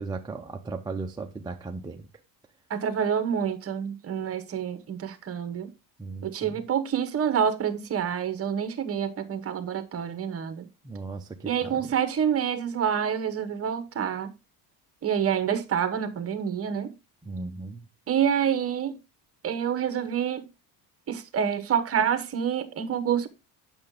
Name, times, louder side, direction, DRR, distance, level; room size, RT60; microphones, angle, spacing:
voice 1, 0.0-2.1 6.0-6.6 10.8-11.9 17.2-17.9, right 3 dB, 10° right, 0.4 m, -37 dB
voice 2, 2.7-5.7 6.2-10.7 11.5-14.3 15.0-16.9 18.1-19.0 19.4-20.5 21.1-23.3, right 8 dB, 35° right, 1.1 m, -27 dB
8.8 x 6.5 x 3.6 m
cardioid pair, 145°, 42 cm